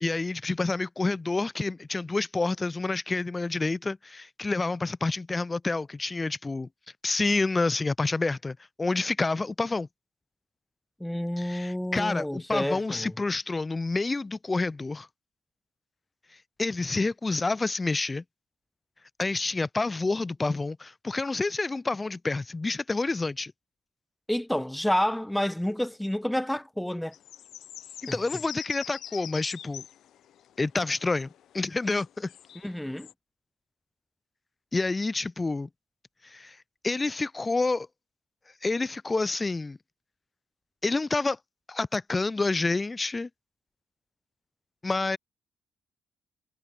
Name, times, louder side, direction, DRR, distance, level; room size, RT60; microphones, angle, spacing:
voice 1, 0.0-6.7 7.0-9.9 11.4-15.1 16.6-18.2 19.2-23.5 28.0-29.8 30.6-31.3 31.5-32.3 34.7-35.7 36.2-36.6 36.8-37.9 38.6-39.8 40.8-41.4 41.7-43.3 44.8-45.2, left 3 dB, 25° left, 0.5 m, -28 dB
voice 2, 11.0-13.1 24.3-27.1 28.1-28.2 32.6-33.1, left 1 dB, 5° left, 1.2 m, -29 dB
sound 1, 27.1-33.1, left 11 dB, 70° left, 0.7 m, -45 dB
cardioid pair, 90°, 0 cm